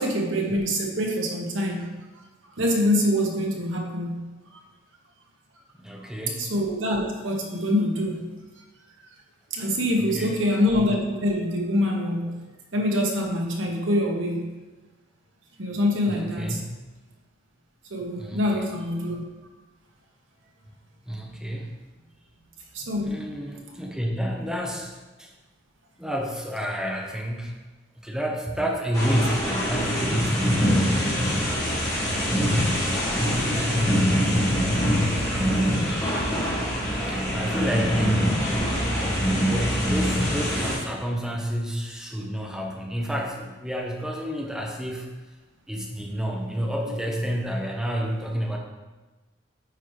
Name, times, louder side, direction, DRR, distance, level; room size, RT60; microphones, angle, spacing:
voice 1, 0.0-2.2 2.6-4.6 6.4-8.3 8.9-9.0 9.5-12.4 12.7-14.5 15.6-16.6 17.9-19.2 22.7-23.2 31.8-31.9 33.0-33.2 35.2-35.3 35.6-35.8 46.9-47.0, left 1 dB, 85° right, 0 dB, 1.2 m, -25 dB
voice 2, 5.8-6.5 10.1-10.4 16.1-16.7 18.2-18.7 21.1-21.7 22.0-22.1 23.0-25.3 26.0-27.5 28.0-30.8 35.9-36.1 36.4-36.5 37.0-39.1 39.4-45.1 45.7-48.6, equal, 5° right, 0 dB, 0.7 m, -29 dB
sound 1, 28.9-40.7, equal, 20° left, 1.9 m, -24 dB
9.2 x 4.4 x 3.1 m, 1.2 s
head